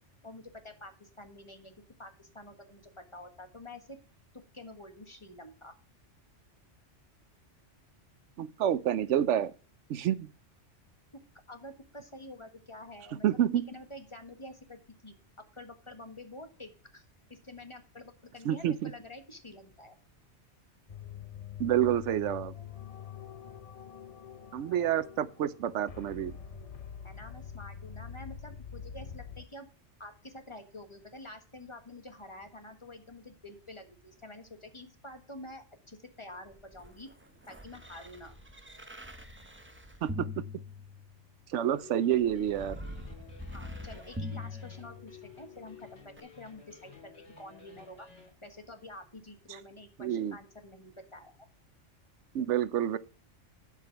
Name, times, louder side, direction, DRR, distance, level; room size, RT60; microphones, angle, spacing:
voice 1, 0.2-1.7 2.0-4.0 4.5-5.7 11.5-13.4 13.7-15.1 15.5-17.0 17.3-19.9 24.7-24.8 27.0-29.7 30.0-37.1 37.5-38.3 43.5-47.1 47.4-48.1 48.4-51.3, left 1 dB, 25° left, 1.5 m, -48 dB
voice 2, 8.4-9.5 9.9-10.3 13.2-13.6 18.4-18.9 21.6-22.5 24.5-26.3 40.0-40.4 41.5-42.8 50.0-50.4 52.3-53.0, right 11 dB, 80° right, 0.9 m, -28 dB
sound 1, 20.9-29.4, left 8 dB, 40° left, 0.6 m, -45 dB
sound 2, 36.4-41.4 42.1-45.4 46.2-46.3, left 2 dB, 10° right, 0.8 m, -43 dB
sound 3, 41.5-48.3, left 6 dB, 85° left, 3.7 m, -54 dB
12.0 x 4.9 x 5.8 m
omnidirectional pair, 1.2 m